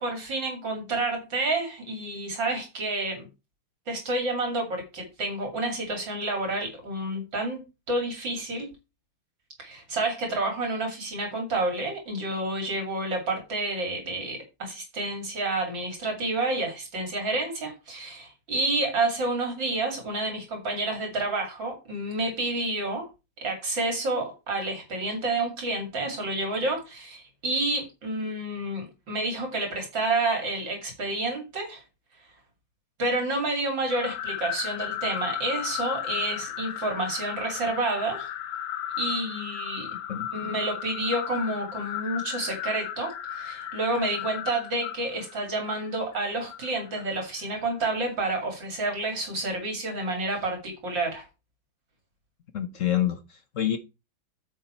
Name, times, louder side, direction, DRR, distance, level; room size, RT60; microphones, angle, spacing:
voice 1, 0.0-3.3 3.9-7.6 7.9-8.7 9.6-23.1 23.4-31.8 33.0-38.3 39.0-39.9 40.3-51.3, right 2 dB, 60° right, 3.3 m, -29 dB
sound 1, 33.9-47.2, left 10 dB, 90° left, 1.7 m, -35 dB
voice 2, 52.5-53.8, left 11 dB, 55° left, 0.8 m, -27 dB
9.3 x 7.2 x 4.4 m
omnidirectional pair, 2.3 m